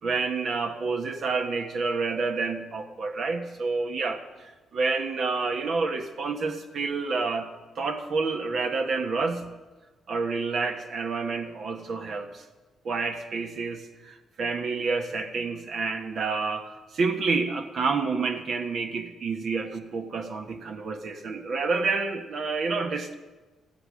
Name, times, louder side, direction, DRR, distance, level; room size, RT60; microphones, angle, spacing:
voice 1, 0.0-7.5 7.8-9.5 10.1-12.4 12.8-23.1, right 4 dB, 60° right, 6 dB, 1.2 m, -29 dB
14.5 x 12.0 x 6.3 m, 1.2 s
cardioid pair, 90°, 0 cm